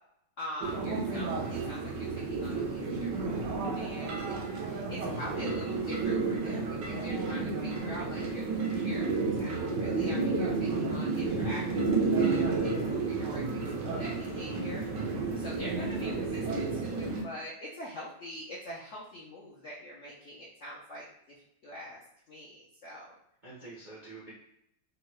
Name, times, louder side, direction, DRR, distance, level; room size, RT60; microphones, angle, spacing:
voice 1, 0.4-4.3 4.6-21.0 21.6-22.0 22.3-23.1, left 1 dB, 65° left, -6 dB, 0.7 m, -44 dB
sound 1, 0.6-17.2, right 3 dB, 80° right, 1.2 m, -31 dB
voice 2, 23.4-24.3, right 3 dB, 50° right, -8 dB, 0.5 m, -46 dB
3.6 x 2.2 x 3.0 m, 0.76 s
omnidirectional pair, 1.9 m